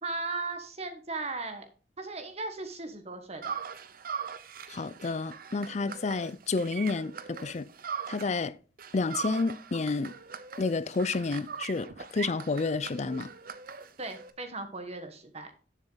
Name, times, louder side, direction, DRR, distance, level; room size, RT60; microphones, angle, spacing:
voice 1, 0.0-1.7 2.0-3.6 5.8-6.0 14.0-15.5, right 3 dB, 35° right, 1.3 m, -37 dB
sound 1, 3.4-8.5 8.8-14.3, right 6 dB, 55° right, 0.8 m, -41 dB
voice 2, 4.7-7.7 8.1-8.6 8.9-10.1 10.6-13.3, left 3 dB, 40° left, 0.5 m, -30 dB
9.7 x 7.3 x 3.9 m
head